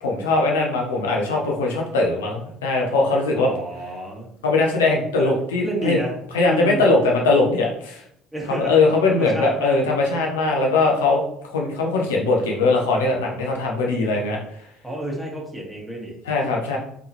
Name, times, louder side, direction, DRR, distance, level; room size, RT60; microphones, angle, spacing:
voice 1, 0.0-3.5 4.4-6.0 6.3-8.0 8.5-14.4 16.2-16.8, left 3 dB, 80° left, -1 dB, 0.9 m, -20 dB
voice 2, 3.4-4.3 5.2-5.3 5.6-6.1 6.4-6.9 8.3-8.7 9.1-9.8 14.8-16.2, right 1 dB, 5° right, -2 dB, 1.7 m, -30 dB
3.7 x 3.7 x 2.9 m, 0.71 s
hypercardioid pair, 60°, 0 cm